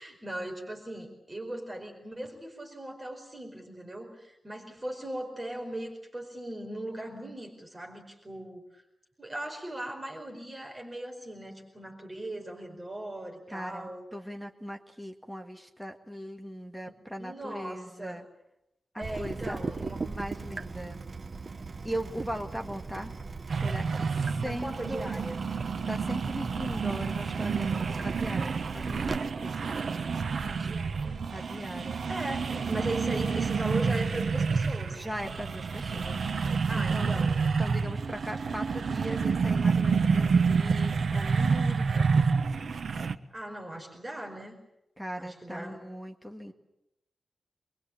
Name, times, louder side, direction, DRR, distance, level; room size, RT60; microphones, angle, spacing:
voice 1, 0.0-8.8 9.2-14.0 17.2-18.2 19.0-20.1 24.4-25.4 30.4-31.2 32.1-35.1 36.7-37.5 43.3-44.6 45.2-45.8, right 1 dB, 20° right, 1 dB, 4.8 m, -39 dB
voice 2, 13.5-18.3 18.9-19.6 20.0-21.1 21.8-23.1 23.5-25.1 25.9-29.8 31.3-32.1 34.9-36.3 36.7-37.1 37.6-42.3 45.0-46.5, equal, ahead, 2 dB, 1.8 m, -39 dB
Water tap faucet / Drip, 19.0-29.2, right 4 dB, 40° right, 1.0 m, -38 dB
sound 1, 23.5-43.2, right 5 dB, 70° right, 1.2 m, -28 dB
25.5 x 23.0 x 8.7 m, 0.85 s
wide cardioid pair, 150°, 0 cm